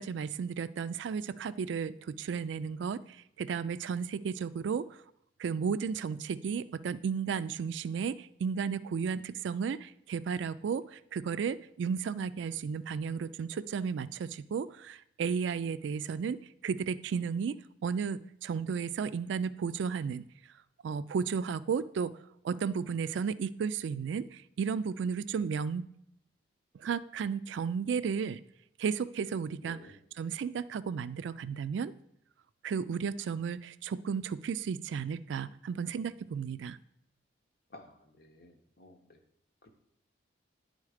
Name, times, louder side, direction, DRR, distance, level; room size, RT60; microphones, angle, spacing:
voice 1, 0.0-3.0 3.4-4.9 5.4-16.4 16.6-20.2 20.8-22.2 22.4-25.8 26.8-28.4 28.8-31.9 32.6-36.8, right 6 dB, 75° right, 15 dB, 0.3 m, -33 dB
voice 2, 29.6-29.9 37.7-37.9 38.2-38.9, left 2 dB, 55° left, 5 dB, 0.9 m, -52 dB
9.6 x 3.9 x 4.9 m, 0.74 s
head